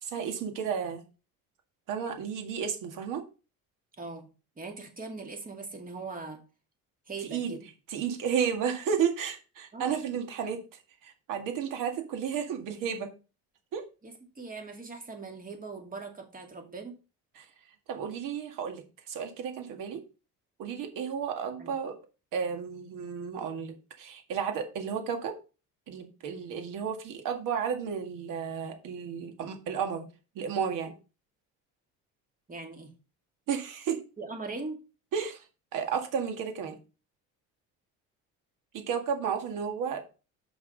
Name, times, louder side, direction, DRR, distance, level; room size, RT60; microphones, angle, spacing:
voice 1, 0.0-1.0 1.9-3.2 7.2-7.6 7.9-13.1 13.7-13.8 17.4-17.5 17.9-20.0 20.6-21.9 22.3-25.3 25.9-30.1 30.4-30.9 33.5-34.0 35.1-35.5 35.7-36.8 38.7-40.0, right 7 dB, 75° right, 5 dB, 2.0 m, -32 dB
voice 2, 4.0-4.3 4.6-6.4 7.1-7.6 9.7-9.9 14.0-17.0 21.6-21.7 32.5-32.9 34.2-34.8, right 3 dB, 25° right, 4 dB, 2.3 m, -40 dB
6.2 x 5.7 x 5.2 m, 0.32 s
cardioid pair, 115°, 33 cm